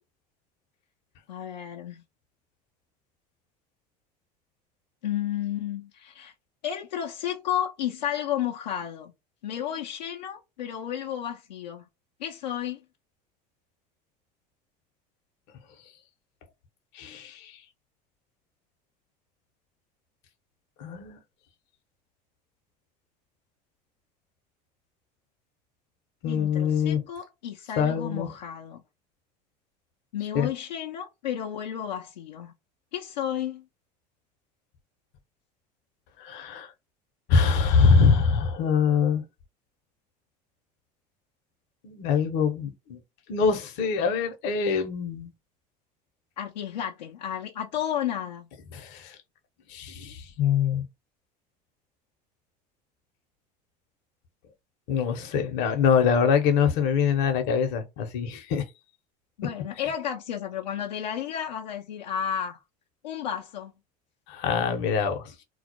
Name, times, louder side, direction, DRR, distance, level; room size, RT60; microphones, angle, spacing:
voice 1, 1.3-2.0 5.0-6.3 6.6-9.1 9.4-11.8 12.2-12.8 26.2-28.8 30.1-32.5 32.9-33.6 46.4-48.5 59.4-62.6 63.0-63.7, left 10 dB, 85° left, 0.5 m, -32 dB
voice 2, 17.0-17.5 20.8-21.2 26.2-27.0 27.8-28.3 30.3-30.5 36.2-36.7 37.3-39.2 41.8-43.0 43.3-45.3 48.7-49.1 49.7-50.8 54.9-58.6 64.3-65.2, left 6 dB, 60° left, 0.8 m, -24 dB
2.3 x 2.0 x 2.8 m
hypercardioid pair, 75°, 21 cm